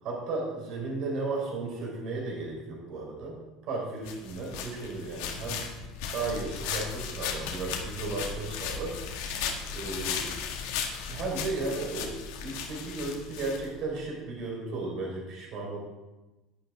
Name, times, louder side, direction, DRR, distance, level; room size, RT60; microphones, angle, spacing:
voice 1, 0.0-3.4 3.6-5.6 6.1-9.0 9.7-10.3 11.1-15.8, right 3 dB, 55° right, -2 dB, 4.1 m, -34 dB
sound 1, 4.0-14.1, left 6 dB, 90° left, 1.5 m, -36 dB
11.0 x 11.0 x 3.6 m, 1.1 s
cardioid pair, 145°, 0 cm